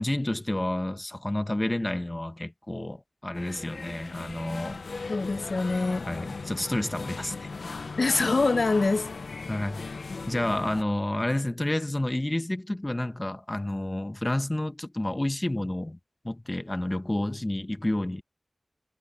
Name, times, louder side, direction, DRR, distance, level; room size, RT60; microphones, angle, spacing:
voice 1, 0.0-4.8 6.1-7.5 9.5-10.0 10.3-16.0 16.2-18.2, left 1 dB, 25° left, 1.4 m, -30 dB
sound 1, 3.3-10.8, left 4 dB, 90° left, 0.8 m, -38 dB
voice 2, 5.1-6.1 8.0-9.1, left 3 dB, 70° left, 1.1 m, -24 dB
wide cardioid pair, 60°, 0 cm